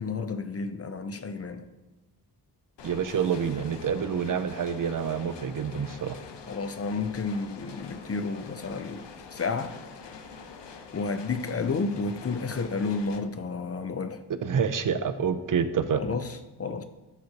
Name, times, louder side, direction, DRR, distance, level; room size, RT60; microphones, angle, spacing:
voice 1, 0.0-1.7 6.5-9.7 10.9-14.2 16.0-16.8, left 4 dB, 35° left, 9 dB, 0.4 m, -31 dB
sound 1, 2.8-13.2, left 5 dB, 80° left, 0.8 m, -45 dB
voice 2, 2.8-6.2 14.3-16.0, right 7 dB, 50° right, 11 dB, 0.5 m, -27 dB
12.0 x 6.5 x 2.8 m, 1.1 s
wide cardioid pair, 170°, 41 cm